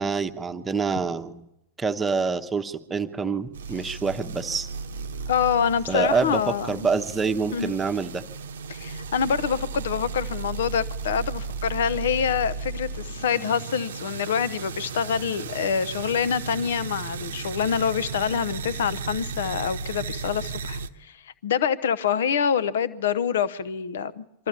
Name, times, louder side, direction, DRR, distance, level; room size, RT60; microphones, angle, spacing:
voice 1, 0.0-1.4 1.8-4.7 5.9-8.2, right 5 dB, 15° right, 1.0 m, -26 dB
sound 1, 3.5-20.9, right 5 dB, 65° right, 0.8 m, -35 dB
voice 2, 5.3-6.9 7.5-7.8 8.7-21.2 21.4-24.5, left 7 dB, 60° left, 0.8 m, -26 dB
24.0 x 13.5 x 8.6 m
figure-of-eight pair, 90°, 0 cm